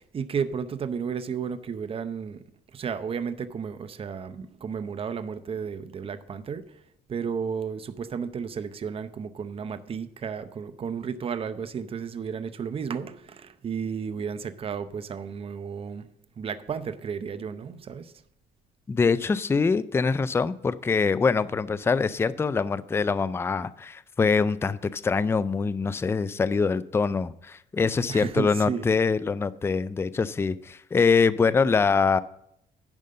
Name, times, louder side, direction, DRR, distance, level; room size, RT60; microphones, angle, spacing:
voice 1, 0.1-2.4 2.7-6.6 7.1-16.1 16.4-18.1 28.1-28.9, right 6 dB, 35° right, 12 dB, 0.7 m, -33 dB
voice 2, 18.9-32.2, left 5 dB, 15° left, 16 dB, 0.3 m, -24 dB
10.5 x 5.3 x 6.5 m, 0.75 s
cardioid pair, 110°, 17 cm